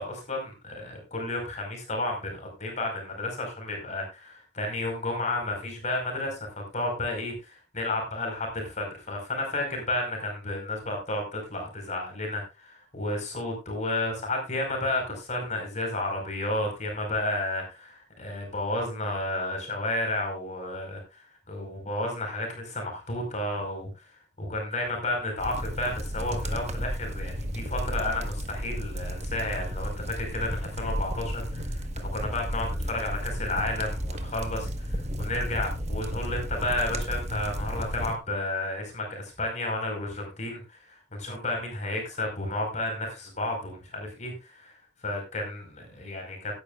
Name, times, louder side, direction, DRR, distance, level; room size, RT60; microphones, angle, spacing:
voice 1, 0.0-23.9 24.4-44.7 45.0-46.5, left 2 dB, 45° left, 2 dB, 5.0 m, -32 dB
sound 1, 25.4-38.2, equal, 40° right, 1.4 m, -33 dB
17.0 x 10.5 x 2.5 m, 0.26 s
head